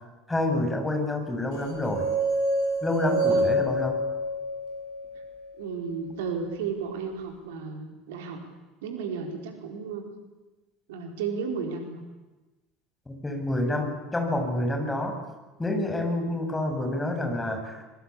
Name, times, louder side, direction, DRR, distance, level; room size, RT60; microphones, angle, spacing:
voice 1, 0.3-2.0 2.8-4.0 13.1-15.2 15.6-17.8, left 1 dB, 15° left, 4 dB, 7.2 m, -28 dB
sound 1, 1.6-5.7, right 1 dB, 60° left, 7.5 m, -27 dB
voice 2, 3.2-3.5 5.6-8.4 8.8-10.1 10.9-12.0, right 5 dB, 65° right, 4 dB, 4.6 m, -33 dB
25.0 x 23.0 x 8.7 m, 1.2 s
figure-of-eight pair, 65°, 0 cm